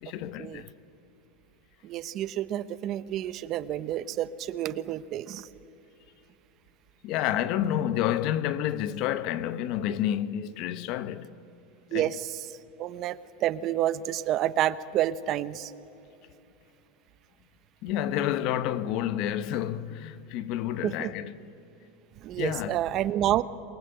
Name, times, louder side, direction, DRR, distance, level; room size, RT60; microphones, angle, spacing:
voice 1, 0.0-0.7 7.0-11.3 11.9-12.1 17.8-21.3 22.4-22.8, left 11 dB, 50° left, 1.0 m, -29 dB
voice 2, 1.8-5.5 11.9-12.5 12.8-15.7 20.8-21.1 22.2-23.4, right 12 dB, 40° right, 0.8 m, -29 dB
27.5 x 22.0 x 7.9 m
supercardioid pair, 130°, 0 cm